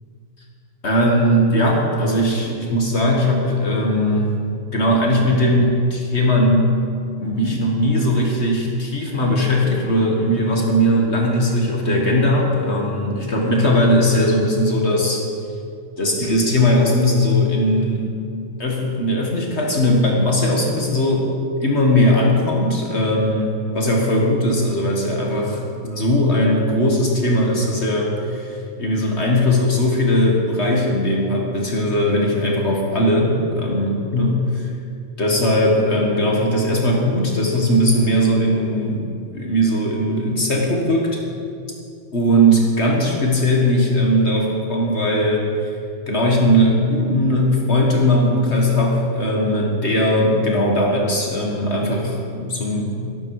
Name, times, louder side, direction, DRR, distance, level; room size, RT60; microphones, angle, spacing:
voice 1, 0.8-4.4 4.7-6.7 7.2-15.2 16.0-18.1 18.6-21.3 21.6-34.7 35.2-41.2 42.1-45.7 46.1-53.1, equal, 45° left, -1 dB, 0.9 m, -19 dB
12.5 x 12.0 x 4.7 m, 2.5 s
omnidirectional pair, 3.3 m